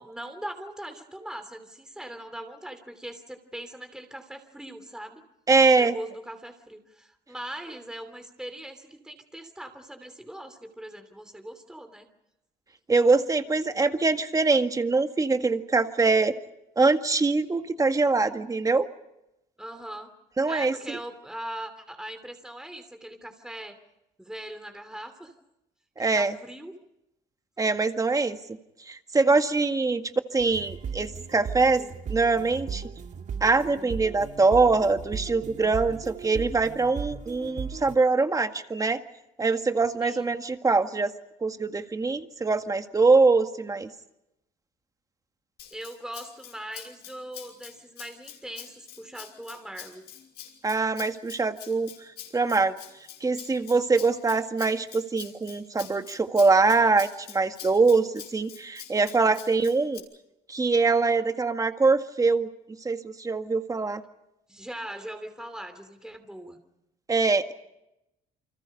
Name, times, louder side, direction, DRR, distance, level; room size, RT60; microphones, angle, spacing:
voice 1, 0.0-5.2 5.8-12.1 19.6-20.1 20.5-23.8 24.2-25.3 26.0-26.8 40.0-40.2 45.7-50.0 59.2-59.6 64.5-66.6, right 1 dB, 5° right, 7 dB, 2.9 m, -40 dB
voice 2, 5.5-6.0 12.9-16.3 16.8-18.9 20.4-21.0 26.0-26.3 27.6-28.4 28.9-30.0 30.3-31.8 32.1-32.8 33.4-39.0 39.4-41.1 41.4-43.9 50.6-51.9 52.3-52.8 53.2-60.0 60.5-62.5 62.8-64.0 67.1-67.5, right 3 dB, 20° right, 7 dB, 1.9 m, -23 dB
sound 1, 30.4-38.0, right 6 dB, 45° right, 1.8 m, -37 dB
Rattle (instrument), 45.6-60.0, left 10 dB, 75° left, 5.7 m, -45 dB
29.0 x 25.5 x 5.5 m, 0.89 s
cardioid pair, 110°, 17 cm